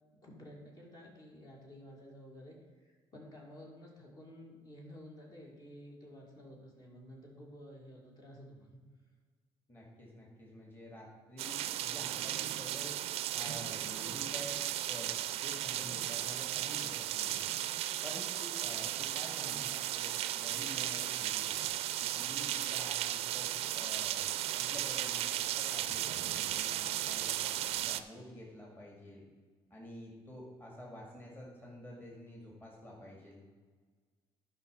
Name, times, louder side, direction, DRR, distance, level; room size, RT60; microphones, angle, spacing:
voice 1, 0.2-8.8 19.4-19.7, equal, 40° left, -2 dB, 2.4 m, -52 dB
voice 2, 9.7-12.9 13.3-15.1 15.4-17.4 18.0-21.7 22.0-29.2 29.7-33.4, left 1 dB, 20° left, -3 dB, 2.2 m, -49 dB
sound 1, 11.4-28.0, right 13 dB, 75° right, 0.5 m, -35 dB
11.0 x 5.5 x 5.2 m, 1.5 s
cardioid pair, 110°, 10 cm